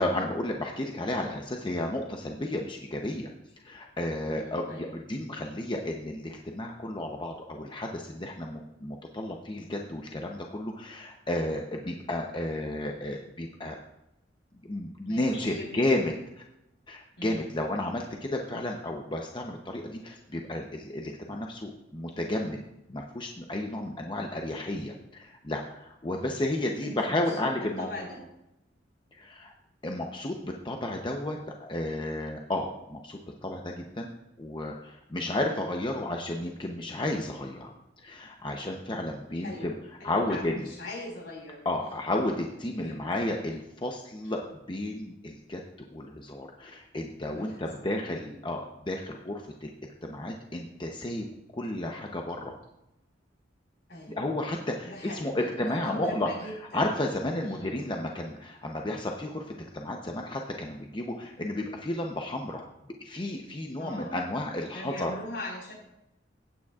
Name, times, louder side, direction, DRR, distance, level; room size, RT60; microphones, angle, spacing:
voice 1, 0.0-3.3 3.6-13.8 14.6-16.4 16.9-22.6 22.9-27.9 29.2-29.5 29.8-34.1 34.4-39.7 40.0-40.7 41.6-44.4 44.7-45.6 45.9-49.7 50.0-51.3 51.6-52.6 54.1-62.6 63.0-65.1, left 1 dB, 25° left, 2 dB, 0.7 m, -32 dB
voice 2, 4.3-4.9 15.0-15.9 17.2-17.5 26.8-28.2 35.2-35.4 39.3-39.7 40.0-41.6 42.8-43.2 44.2-44.3 47.3-47.9 48.1-48.4 53.9-54.3 54.8-56.9 57.4-57.8 63.8-64.2 64.7-65.7, left 1 dB, 65° left, -1 dB, 4.5 m, -41 dB
15.5 x 9.1 x 2.4 m, 0.88 s
head